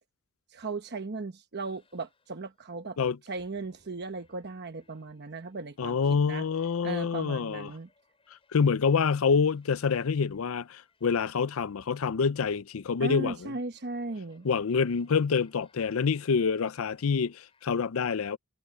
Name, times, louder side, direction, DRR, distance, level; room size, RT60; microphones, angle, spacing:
voice 1, 0.5-3.0 3.3-6.0 6.3-6.4 6.8-7.9 13.0-14.5, right 3 dB, 50° right, 1.0 m, -37 dB
sound 1, 1.6-17.7, left 3 dB, 25° left, 6.8 m, -69 dB
voice 2, 5.8-7.7 8.5-13.5 14.4-18.4, left 5 dB, 80° left, 0.5 m, -27 dB
head